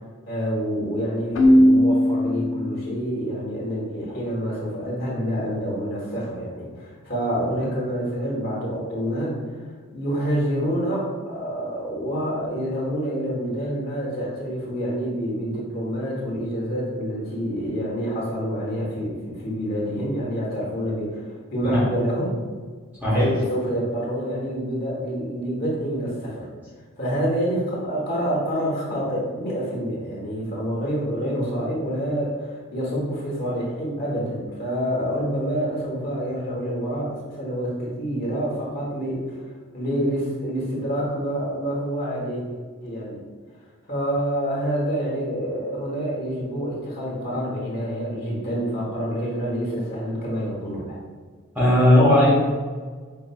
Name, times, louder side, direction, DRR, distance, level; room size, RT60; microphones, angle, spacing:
voice 1, 0.3-9.6 9.9-22.3 23.1-26.5 27.0-39.4 39.7-42.4 42.8-43.2 43.9-51.0, equal, 45° left, -5 dB, 1.0 m, -27 dB
Keyboard (musical), 1.3-3.2, equal, 65° left, 0.4 m, -18 dB
voice 2, 51.5-52.3, left 1 dB, 10° right, -8 dB, 0.8 m, -16 dB
5.2 x 2.4 x 2.2 m, 1.5 s
head